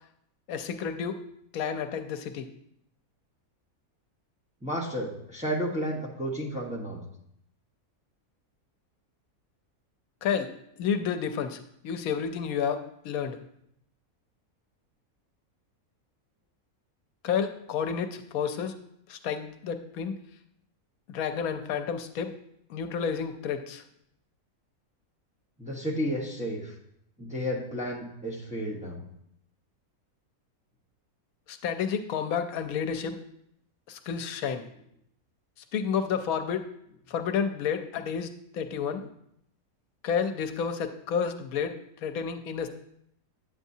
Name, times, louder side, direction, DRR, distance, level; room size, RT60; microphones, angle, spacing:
voice 1, 0.5-1.2 1.5-2.5 10.2-10.5 10.8-13.4 17.2-18.7 19.1-20.1 21.1-22.3 22.7-23.8 31.5-33.2 33.9-34.6 35.7-36.6 37.1-39.0 40.0-42.7, left 7 dB, 80° left, 9 dB, 1.1 m, -30 dB
voice 2, 4.6-7.0 25.6-26.7 27.2-29.0, equal, 5° right, -3 dB, 1.0 m, -32 dB
8.9 x 8.2 x 2.7 m, 0.74 s
omnidirectional pair, 1.5 m